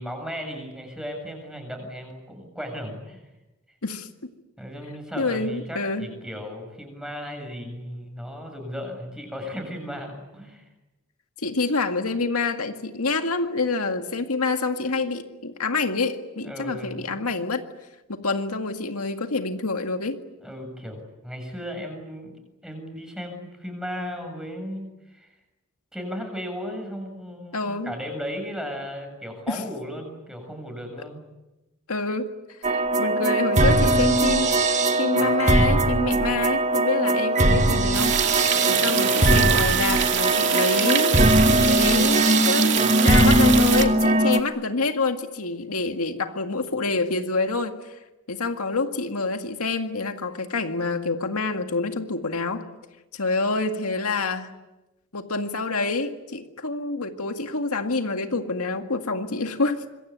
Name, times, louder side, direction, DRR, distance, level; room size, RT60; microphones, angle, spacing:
voice 1, 0.0-3.2 4.6-10.6 16.4-17.4 20.4-22.4 22.6-25.3 25.9-31.3 38.5-38.9, equal, 5° right, 4 dB, 7.4 m, -36 dB
voice 2, 5.2-6.1 11.4-17.6 18.1-20.2 27.5-27.9 29.5-29.6 31.9-32.3 32.6-34.6 35.0-38.2 38.7-41.2 41.6-48.0 48.3-52.6 53.1-54.5 55.1-59.8, left 3 dB, 80° left, 5 dB, 2.0 m, -27 dB
sound 1, 32.6-44.4, right 1 dB, 30° right, 1.9 m, -20 dB
sound 2, 37.9-43.8, right 9 dB, 55° right, 2.5 m, -25 dB
26.5 x 23.0 x 9.4 m, 1.0 s
head